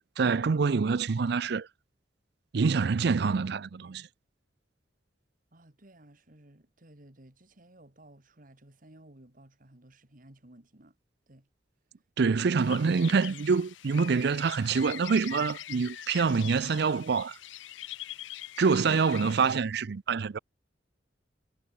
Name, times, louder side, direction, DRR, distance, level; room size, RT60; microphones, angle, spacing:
voice 1, 0.0-1.7 2.5-4.1 12.2-17.4 18.6-20.4, right 5 dB, 65° right, 0.5 m, -26 dB
voice 2, 5.5-11.0 11.3-11.5 18.8-19.0, right 1 dB, 50° right, 2.5 m, -55 dB
sound 1, 12.6-19.6, left 13 dB, 90° left, 0.5 m, -43 dB
head